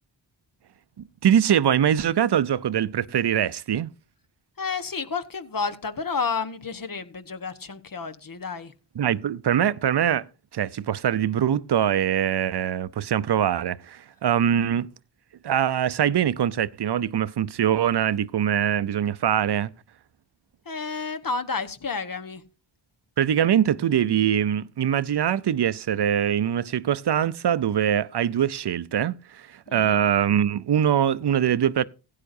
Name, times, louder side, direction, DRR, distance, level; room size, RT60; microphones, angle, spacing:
voice 1, 1.2-3.9 9.0-10.3 10.5-14.9 15.4-19.7 23.2-31.8, right 9 dB, 55° right, 0.7 m, -23 dB
voice 2, 4.6-8.7 20.6-22.4 29.7-30.0, left 5 dB, 45° left, 1.2 m, -31 dB
16.0 x 9.7 x 2.7 m
cardioid pair, 45°, 48 cm